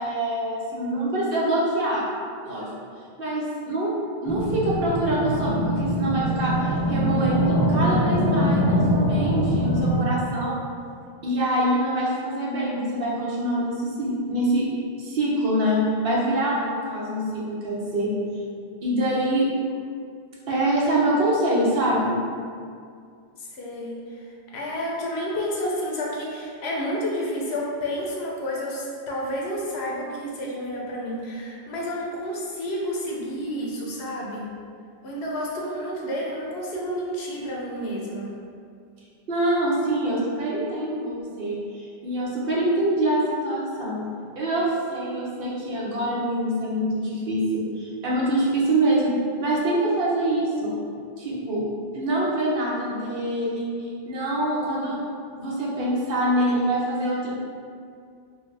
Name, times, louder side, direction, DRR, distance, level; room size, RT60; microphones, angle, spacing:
voice 1, 0.0-2.0 2.4-2.7 3.2-4.0 4.2-10.6 11.2-14.7 15.0-18.1 18.8-19.5 20.5-22.2 39.3-44.1 44.4-49.1 49.4-50.8 51.2-51.6 51.9-55.0 55.4-57.3, right 1 dB, 65° right, -5 dB, 0.9 m, -25 dB
sound 1, 4.3-10.0, equal, 25° left, 0.5 m, -23 dB
voice 2, 23.4-24.2 24.5-34.5 35.0-38.4, equal, 80° left, -3 dB, 0.9 m, -30 dB
2.7 x 2.7 x 3.2 m, 2.3 s
omnidirectional pair, 1.0 m